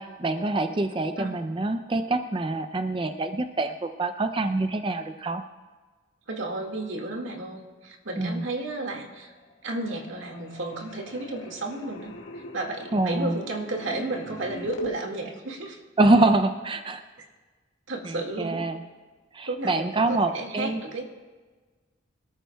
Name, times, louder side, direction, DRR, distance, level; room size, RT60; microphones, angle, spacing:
voice 1, 0.0-5.4 8.2-8.5 12.9-13.4 16.0-17.0 18.0-18.8 19.3-20.8, right 2 dB, 25° right, 9 dB, 0.4 m, -25 dB
voice 2, 6.3-9.3 9.6-12.1 12.5-15.8 17.9-18.7 19.5-21.0, right 2 dB, 85° right, 1 dB, 2.0 m, -33 dB
sound 1, 9.1-9.5 9.8-14.9, left 1 dB, 75° left, 1.7 m, -40 dB
24.5 x 13.5 x 2.3 m, 1.4 s
head